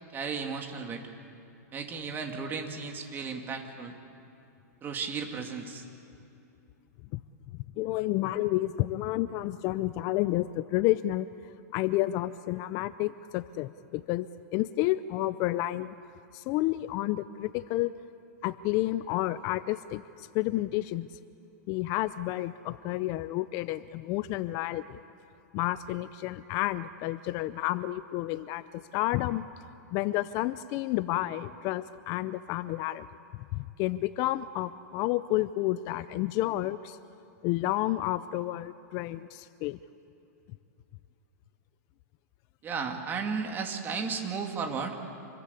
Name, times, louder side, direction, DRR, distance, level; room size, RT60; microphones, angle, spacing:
voice 1, 0.1-1.0 1.7-3.9 4.8-5.8 42.6-45.0, right 5 dB, 20° right, 4 dB, 2.5 m, -34 dB
voice 2, 7.5-11.3 11.7-14.3 14.5-15.9 16.3-17.9 18.4-21.1 21.7-25.0 25.5-29.5 29.9-33.1 33.5-37.0 37.4-39.8, left 16 dB, 40° left, 14 dB, 0.5 m, -30 dB
27.5 x 21.5 x 8.5 m, 2.7 s
hypercardioid pair, 145°, 9 cm